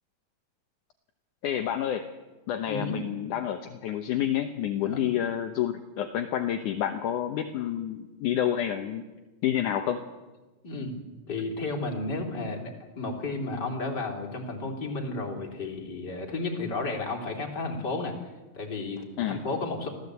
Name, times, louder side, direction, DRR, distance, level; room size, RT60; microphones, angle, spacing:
voice 1, 1.4-2.1 2.5-9.0 9.4-10.0 19.2-19.4, left 10 dB, 70° left, 6 dB, 2.4 m, -29 dB
voice 2, 2.7-3.0 4.8-5.1 10.6-11.0 11.3-18.1 18.5-19.9, left 3 dB, 30° left, 2 dB, 3.8 m, -32 dB
26.0 x 16.5 x 8.3 m, 1.2 s
omnidirectional pair, 3.9 m